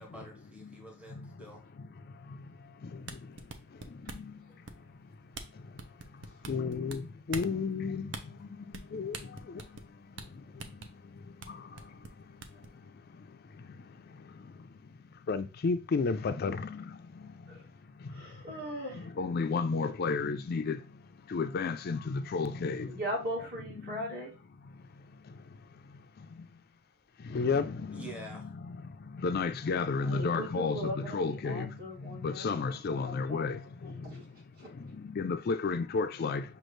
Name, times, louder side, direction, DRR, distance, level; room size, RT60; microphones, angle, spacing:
voice 1, 0.0-1.6 27.9-28.5, right 2 dB, 5° right, 0.9 m, -47 dB
sound 1, 2.9-4.3 4.7-5.0 5.3-5.5 5.8-7.0 7.3-7.5 8.1-8.2 8.7-8.9 9.1-9.9 10.2-10.3 10.6-10.9 11.4-11.5 11.8-12.7, right 4 dB, 65° right, 0.6 m, -42 dB
voice 2, 6.5-7.0 7.3-8.1 8.9-9.1 15.3-16.6 19.2-20.8 21.3-22.9 27.3-27.6 29.2-31.7 32.2-33.6 35.2-36.4, left 4 dB, 50° left, 0.4 m, -31 dB
voice 3, 18.1-19.1 22.9-24.3 30.0-32.6 32.9-33.4 33.8-34.2 34.6-34.7, equal, 50° right, 2.1 m, -39 dB
6.4 x 2.5 x 3.1 m
head